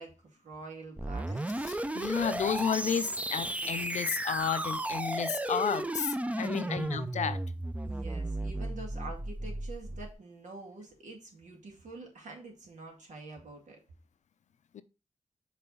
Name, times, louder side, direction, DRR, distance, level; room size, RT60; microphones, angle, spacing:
voice 1, 0.0-1.6 6.2-6.8 7.8-13.8, right 3 dB, 85° right, 2.0 m, -47 dB
sound 1, 1.0-10.1, right 1 dB, 10° right, 0.5 m, -34 dB
voice 2, 1.7-7.4 14.7-14.8, left 7 dB, 80° left, 0.5 m, -32 dB
5.7 x 3.4 x 5.3 m
wide cardioid pair, 90°, 12 cm